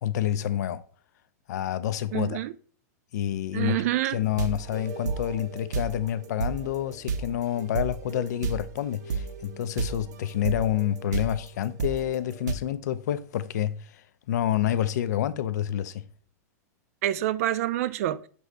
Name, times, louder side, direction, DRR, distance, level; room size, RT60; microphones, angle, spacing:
voice 1, 0.0-0.8 1.5-2.4 3.1-3.8 4.1-13.9 14.3-16.0, left 11 dB, 75° left, 0.4 m, -28 dB
voice 2, 2.1-2.5 3.5-4.2 17.0-18.2, right 13 dB, 55° right, 0.3 m, -27 dB
sound 1, 4.2-12.5, right 5 dB, 85° right, 0.7 m, -33 dB
6.1 x 2.7 x 3.2 m
supercardioid pair, 155°, 9 cm